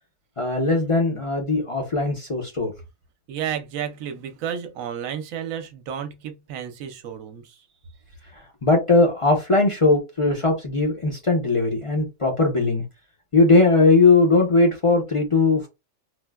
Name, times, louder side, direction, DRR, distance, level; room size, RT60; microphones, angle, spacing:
voice 1, 0.4-2.7 8.6-12.8 13.3-15.7, left 3 dB, 40° left, 0.4 m, -19 dB
voice 2, 3.3-7.6, right 9 dB, 70° right, 1.0 m, -32 dB
4.3 x 2.1 x 2.2 m
omnidirectional pair, 1.5 m